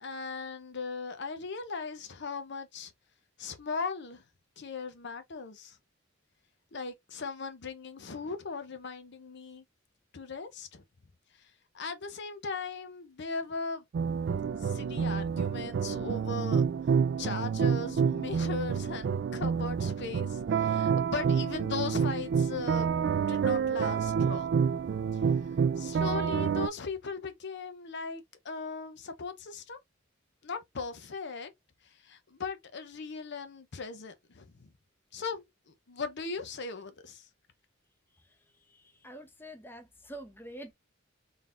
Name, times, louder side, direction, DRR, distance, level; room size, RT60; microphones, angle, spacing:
voice 1, 0.0-2.9 3.4-4.2 4.6-5.8 6.7-9.6 10.1-10.8 11.7-13.8 14.6-16.6 17.2-24.5 25.8-29.8 30.4-31.5 32.0-34.7 35.1-37.3, left 4 dB, 60° left, 0.8 m, -38 dB
sound 1, 13.9-26.7, right 6 dB, 60° right, 0.3 m, -28 dB
voice 2, 39.0-40.7, right 1 dB, 10° left, 0.8 m, -45 dB
4.0 x 3.5 x 2.5 m
head